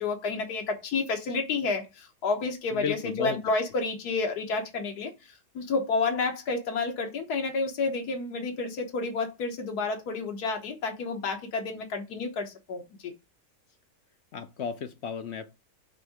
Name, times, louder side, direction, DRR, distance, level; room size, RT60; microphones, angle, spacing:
voice 1, 0.0-13.1, left 4 dB, 80° left, 1.7 m, -30 dB
voice 2, 2.7-3.4 14.3-15.6, left 7 dB, 60° left, 0.7 m, -33 dB
7.5 x 2.7 x 4.8 m
omnidirectional pair, 1.7 m